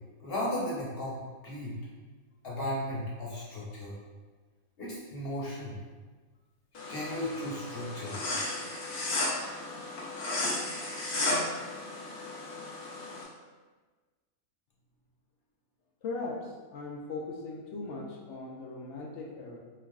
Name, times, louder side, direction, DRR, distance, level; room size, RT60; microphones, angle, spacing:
voice 1, 0.2-1.2 1.4-1.8 2.4-3.9 4.8-5.8 6.9-8.2, left 1 dB, 45° left, -6 dB, 1.1 m, -35 dB
sound 1, 6.8-13.2, left 2 dB, 90° left, 1.4 m, -34 dB
voice 2, 16.0-19.6, left 3 dB, 65° left, -1 dB, 0.8 m, -39 dB
4.0 x 3.3 x 2.3 m, 1.3 s
omnidirectional pair, 1.5 m